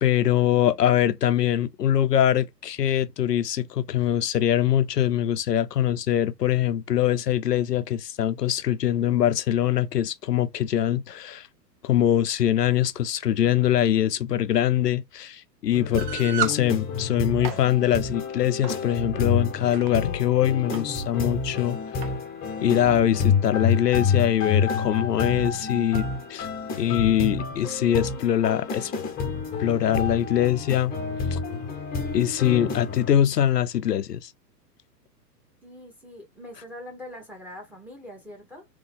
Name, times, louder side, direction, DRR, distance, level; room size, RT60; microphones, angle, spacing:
voice 1, 0.0-11.5 11.8-21.8 22.6-26.5 26.8-28.9 29.6-31.0 31.3-31.4 32.1-34.3, left 11 dB, 70° left, 0.7 m, -23 dB
sound 1, 15.7-33.1, left 5 dB, 20° left, 1.1 m, -29 dB
sound 2, 16.0-16.6 17.2-17.6 18.6-18.8 19.5-19.9 20.7-20.8 21.1-21.2 22.0-22.2, right 8 dB, 30° right, 0.7 m, -31 dB
voice 2, 35.6-38.7, left 1 dB, 5° right, 1.7 m, -43 dB
3.7 x 3.2 x 3.5 m
figure-of-eight pair, 110°, 49 cm